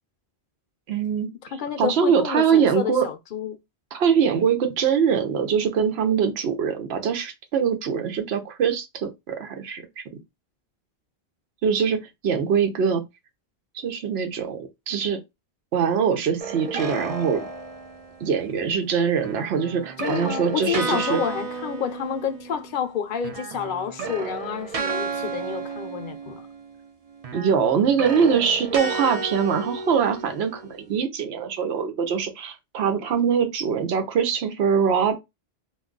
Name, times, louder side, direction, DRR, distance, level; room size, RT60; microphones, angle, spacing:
voice 1, 0.9-1.3 1.8-3.0 3.9-10.0 11.6-13.0 13.7-15.2 15.7-17.5 18.2-21.2 27.3-35.2, right 7 dB, 90° right, 0.9 m, -23 dB
voice 2, 1.5-3.6 20.0-26.4, left 7 dB, 60° left, 0.6 m, -29 dB
sound 1, 16.4-18.3 19.2-22.9 23.2-26.8 27.2-30.7, right 4 dB, 45° right, 0.5 m, -33 dB
2.3 x 2.2 x 3.7 m
omnidirectional pair, 1.0 m